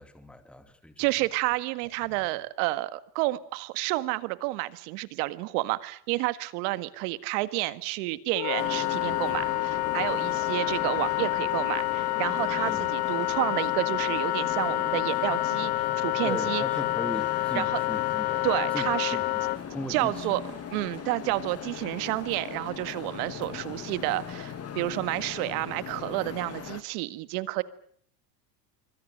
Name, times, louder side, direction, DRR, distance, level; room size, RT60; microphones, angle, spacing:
voice 1, 0.0-1.3 2.1-2.2 12.6-12.9 16.2-20.3, left 1 dB, ahead, 2.5 m, -39 dB
voice 2, 1.0-16.6 17.6-17.8 18.4-19.2 19.9-20.4 20.7-27.6, right 19 dB, 70° right, 1.9 m, -30 dB
Wind instrument woodwind instrument, 8.3-19.6, left 20 dB, 55° left, 1.3 m, -28 dB
sound 1, 8.6-26.8, left 9 dB, 30° left, 1.8 m, -39 dB
sound 2, 9.0-26.8, right 11 dB, 40° right, 2.5 m, -53 dB
26.0 x 24.5 x 6.6 m
supercardioid pair, 120°, 48 cm